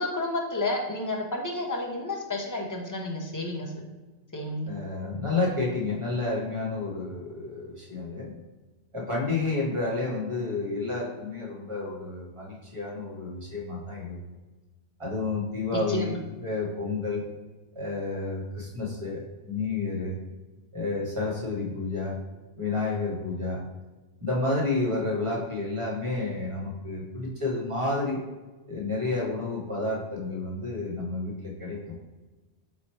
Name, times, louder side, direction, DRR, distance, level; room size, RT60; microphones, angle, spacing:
voice 1, 0.0-3.7 4.3-4.7 15.7-16.1, left 2 dB, 20° left, 0 dB, 0.5 m, -31 dB
voice 2, 4.7-8.4 8.9-14.2 15.0-17.2 17.7-20.2 20.7-22.2 22.6-23.6 24.2-28.2 28.7-31.9, left 3 dB, 30° right, -3 dB, 1.0 m, -30 dB
4.3 x 2.5 x 4.3 m, 1.2 s
omnidirectional pair, 1.2 m